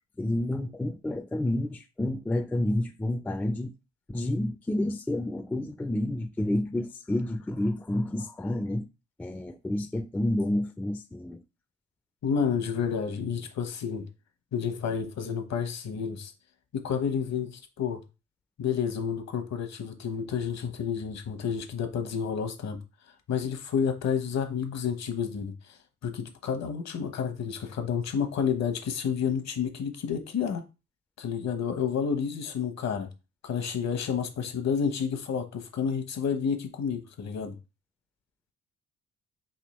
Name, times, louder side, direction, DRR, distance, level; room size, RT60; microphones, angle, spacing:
voice 1, 0.2-3.7 4.1-8.9 9.2-11.4, left 1 dB, 5° left, 0.3 m, -29 dB
voice 2, 12.2-14.1 14.5-16.3 16.7-18.0 18.6-22.8 23.3-25.8 26.0-30.6 31.2-33.1 33.4-37.6, left 7 dB, 60° left, 1.0 m, -30 dB
3.5 x 2.9 x 4.2 m
cardioid pair, 90°, 30 cm